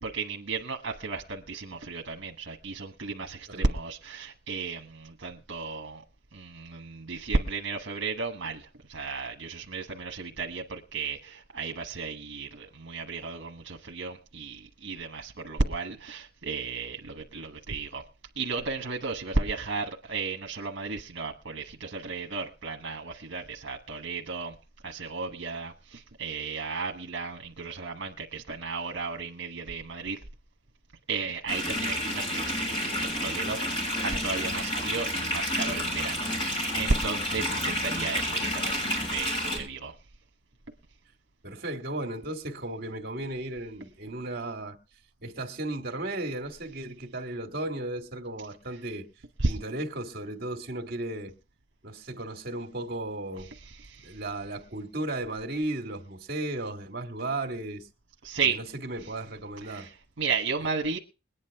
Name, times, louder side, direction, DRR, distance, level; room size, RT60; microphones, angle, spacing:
voice 1, 0.0-6.0 6.3-18.0 18.4-24.5 24.8-30.2 31.1-32.8 33.0-39.9 49.4-49.5 53.6-54.2 58.2-58.6 59.7-61.0, right 4 dB, 80° right, 1.2 m, -33 dB
sound 1, 31.5-39.6, equal, 30° left, 6.5 m, -30 dB
voice 2, 41.4-44.8 45.2-49.1 49.4-51.3 51.8-53.5 54.0-57.9 58.4-59.9, right 2 dB, 55° right, 1.9 m, -35 dB
21.5 x 9.6 x 3.5 m
head